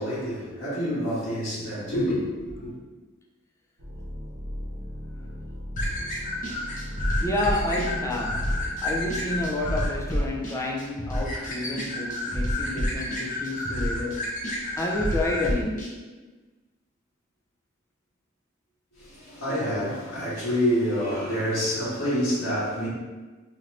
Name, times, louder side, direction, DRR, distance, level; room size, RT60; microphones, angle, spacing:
voice 1, 0.0-2.7 19.0-22.9, equal, 90° left, -10 dB, 1.3 m, -27 dB
sound 1, 3.8-10.3, equal, 90° right, 0.8 m, -37 dB
sound 2, 5.8-15.9, left 1 dB, 40° left, 0.8 m, -30 dB
voice 2, 7.2-15.9, left 2 dB, 15° left, -1 dB, 0.3 m, -30 dB
2.8 x 2.5 x 3.1 m, 1.3 s
head